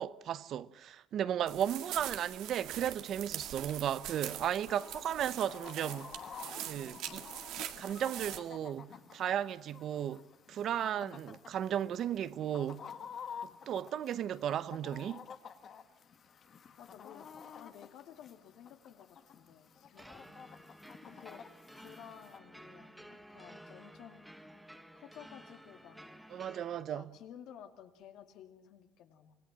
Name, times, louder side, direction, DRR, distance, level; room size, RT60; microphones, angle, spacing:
voice 1, 0.0-6.1 6.6-7.3 7.8-10.2 10.5-12.9 13.7-15.2 26.3-27.1, right 10 dB, 50° right, 0.8 m, -35 dB
voice 2, 1.5-2.1 10.7-11.3 13.5-13.9 16.8-17.3 17.5-21.4 21.7-24.2 24.9-26.0 26.9-29.3, left 9 dB, 70° left, 2.5 m, -54 dB
sound 1, 1.5-8.4, right 12 dB, 75° right, 1.9 m, -43 dB
Chicken rooster, 4.6-22.4, left 7 dB, 40° left, 1.7 m, -51 dB
sound 2, 20.0-26.8, equal, 5° right, 1.3 m, -54 dB
25.5 x 19.5 x 7.5 m
cardioid pair, 140°, 0 cm